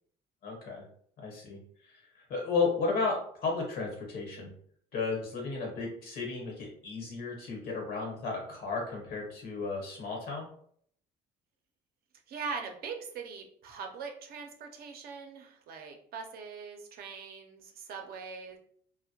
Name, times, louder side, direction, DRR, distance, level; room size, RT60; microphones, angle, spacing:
voice 1, 0.4-0.8 1.2-1.6 2.1-4.5 4.9-10.5, left 4 dB, 65° left, -1 dB, 1.0 m, -33 dB
voice 2, 12.3-18.6, right 5 dB, 65° right, 4 dB, 0.5 m, -41 dB
2.1 x 2.1 x 2.8 m, 0.62 s
cardioid pair, 110°, 17 cm